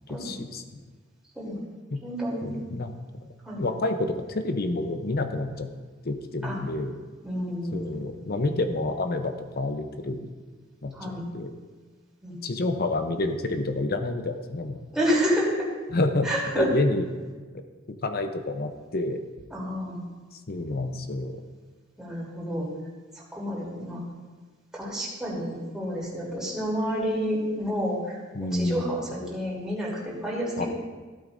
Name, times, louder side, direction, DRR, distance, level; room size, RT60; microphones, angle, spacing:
voice 1, 0.1-0.6 1.9-2.0 2.4-2.9 3.6-5.7 6.0-6.9 7.7-10.3 10.8-11.5 12.4-14.8 15.9-16.3 16.5-17.1 17.9-19.2 20.5-21.3 28.3-29.0 30.6-30.7, left 2 dB, 50° left, 7 dB, 0.8 m, -28 dB
voice 2, 2.0-2.5 3.4-3.6 6.4-6.6 7.2-8.0 10.9-11.2 12.2-12.3 14.9-15.7 16.2-16.7 19.5-20.0 22.0-22.7 23.1-24.0 24.7-30.7, equal, 5° right, -6 dB, 3.4 m, -29 dB
16.0 x 8.7 x 2.7 m, 1.4 s
head